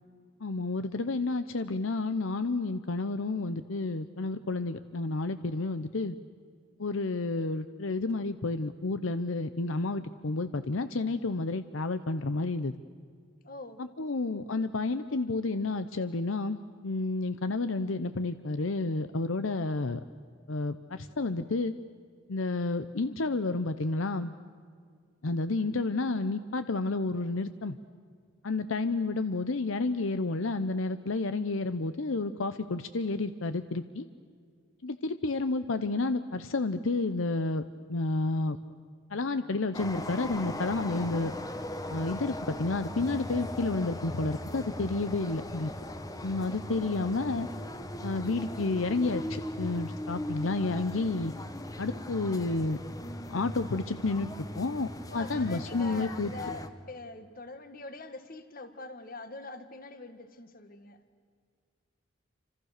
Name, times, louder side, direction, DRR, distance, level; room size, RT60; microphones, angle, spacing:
voice 1, 0.4-6.1 6.8-12.7 13.8-20.0 20.5-21.7 22.3-24.3 25.2-27.8 28.4-34.1 34.8-37.6 37.9-38.6 39.1-41.3 41.9-45.7 46.2-47.5 48.0-51.3 51.8-52.8 53.3-54.3 54.6-56.3, left 3 dB, 75° left, 11 dB, 0.8 m, -30 dB
voice 2, 13.4-13.8 55.1-61.0, left 3 dB, 45° left, 10 dB, 1.6 m, -43 dB
sound 1, 39.7-56.7, left 1 dB, 15° left, 1.1 m, -39 dB
28.5 x 26.0 x 6.7 m, 2.1 s
head